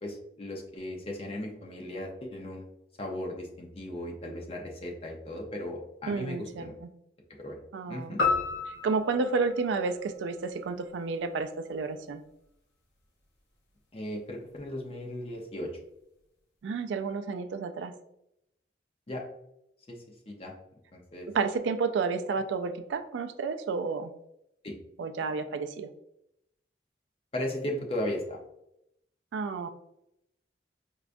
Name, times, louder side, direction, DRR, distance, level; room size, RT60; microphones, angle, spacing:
voice 1, 0.0-2.7 3.0-6.7 7.4-7.6 7.9-8.2 13.9-15.7 19.1-19.2 19.9-20.0 20.3-20.5 20.9-21.3 24.6-24.7 27.3-28.4, left 1 dB, 30° left, 0 dB, 0.6 m, -36 dB
voice 2, 6.1-6.9 7.7-8.2 8.8-12.2 16.6-17.9 21.3-24.1 25.0-25.9 29.3-29.7, right 4 dB, 85° right, 8 dB, 0.3 m, -31 dB
sound 1, 8.2-10.7, left 4 dB, 75° left, 0.8 m, -31 dB
5.0 x 2.3 x 2.5 m, 0.81 s
head